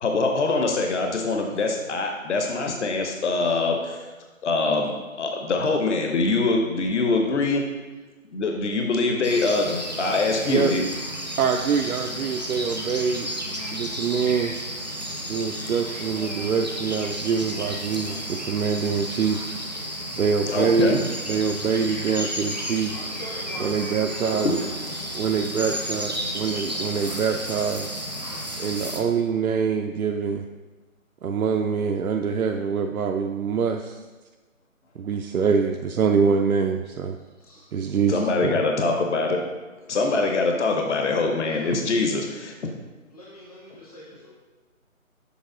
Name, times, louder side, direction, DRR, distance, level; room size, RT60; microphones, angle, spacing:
voice 1, 0.0-4.1 4.4-4.9 5.2-7.6 8.3-10.8 20.5-21.0 24.4-24.5 38.1-39.4 39.9-42.5, left 3 dB, 55° left, 3 dB, 0.7 m, -23 dB
sound 1, 9.2-29.0, equal, 30° right, 0.5 m, -32 dB
voice 2, 11.4-13.3 13.7-14.5 15.3-19.5 20.1-21.0 21.3-22.9 23.6-24.6 25.2-27.9 28.6-30.4 31.2-34.0 35.0-37.2 37.7-38.5, right 6 dB, 85° right, 4 dB, 0.5 m, -24 dB
voice 3, 22.9-23.9 24.3-24.8 37.4-37.7 39.9-40.5 41.2-41.8 43.1-44.4, equal, 30° left, -5 dB, 0.5 m, -42 dB
7.0 x 4.5 x 3.7 m, 1.3 s
figure-of-eight pair, 160°, 42 cm